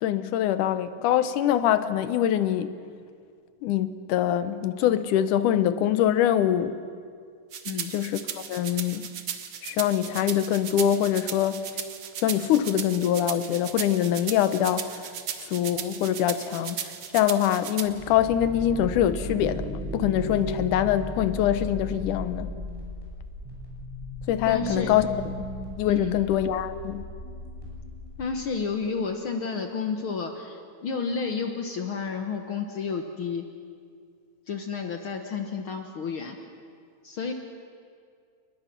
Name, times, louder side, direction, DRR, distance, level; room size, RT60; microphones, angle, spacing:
voice 1, 0.0-2.8 3.6-6.8 7.9-9.0 9.6-11.6 12.2-15.0 15.5-22.5 24.3-25.1 25.8-27.0, left 11 dB, 85° left, 12 dB, 2.4 m, -24 dB
sound 1, 7.5-17.9, right 8 dB, 65° right, 1.1 m, -36 dB
sound 2, 17.8-28.5, equal, 5° right, 5.8 m, -36 dB
voice 2, 24.5-24.9 25.9-26.2 28.2-33.5 34.5-36.4 37.0-37.3, left 5 dB, 55° left, 5 dB, 1.6 m, -31 dB
29.0 x 20.5 x 6.0 m, 2.2 s
omnidirectional pair, 3.5 m